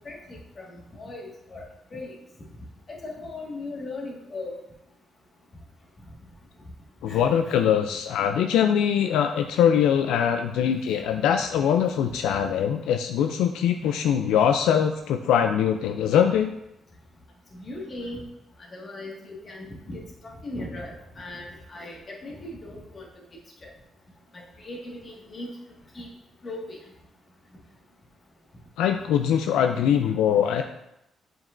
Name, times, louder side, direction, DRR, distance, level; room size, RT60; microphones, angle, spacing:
voice 1, 0.0-1.6 1.9-2.1 2.9-4.5 7.1-7.6 11.0-11.2 17.5-18.3 18.7-23.1 23.6-23.7 24.3-25.6 25.9-26.1 26.4-26.8, left 2 dB, 40° left, -2 dB, 1.6 m, -38 dB
voice 2, 7.0-16.5 28.8-30.6, left 8 dB, 90° left, 6 dB, 0.3 m, -22 dB
7.3 x 5.3 x 2.5 m, 0.84 s
cardioid pair, 90°, 0 cm